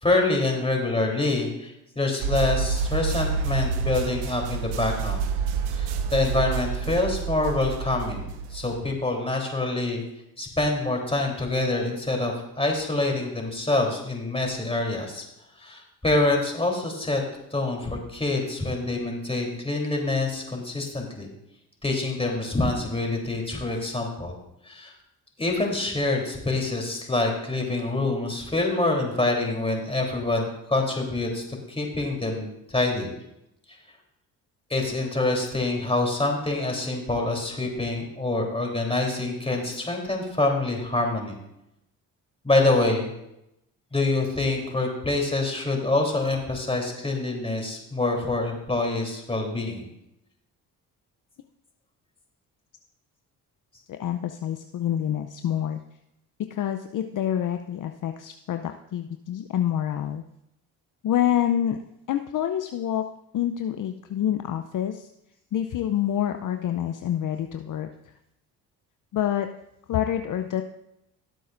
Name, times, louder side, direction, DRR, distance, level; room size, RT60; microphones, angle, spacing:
voice 1, 0.0-5.2 5.8-10.0 10.4-15.3 15.6-17.2 17.5-21.3 21.8-24.3 24.6-24.9 25.4-33.1 34.7-41.4 42.4-43.1 43.9-49.8, left 2 dB, 15° left, 1 dB, 3.4 m, -26 dB
sound 1, 2.2-8.9, right 5 dB, 85° right, 0.8 m, -28 dB
voice 2, 53.9-55.8 56.5-60.2 61.0-61.8 62.1-63.1 63.3-65.1 65.5-68.1 69.1-69.5 69.9-70.6, left 10 dB, 55° left, 7 dB, 0.6 m, -27 dB
17.0 x 7.7 x 2.6 m, 0.84 s
supercardioid pair, 60°, 39 cm